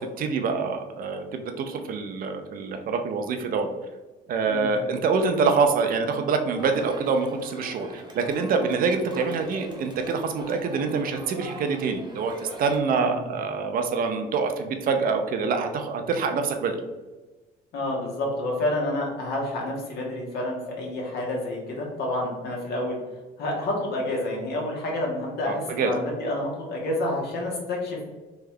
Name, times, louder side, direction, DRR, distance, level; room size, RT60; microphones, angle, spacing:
voice 1, 0.0-3.7 4.3-16.8 25.5-25.9, right 4 dB, 55° right, 6 dB, 0.6 m, -26 dB
Crowd, 6.6-12.8, right 1 dB, 25° right, 0.9 m, -41 dB
voice 2, 17.7-23.0 23.4-28.0, left 1 dB, 70° left, -2 dB, 1.4 m, -29 dB
3.5 x 3.1 x 3.5 m, 1.2 s
cardioid pair, 110°, 17 cm